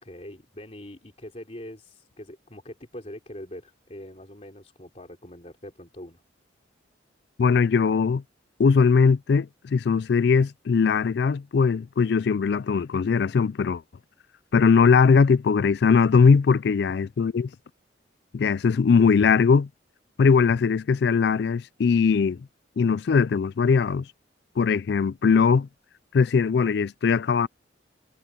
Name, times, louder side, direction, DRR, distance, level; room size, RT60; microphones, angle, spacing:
voice 1, 0.0-6.2, left 1 dB, 35° left, 3.5 m, -43 dB
voice 2, 7.4-8.2 8.6-13.8 14.5-17.5 18.3-19.7 20.2-22.4 22.8-24.1 24.6-25.7 26.1-27.5, left 5 dB, 55° left, 0.3 m, -20 dB
head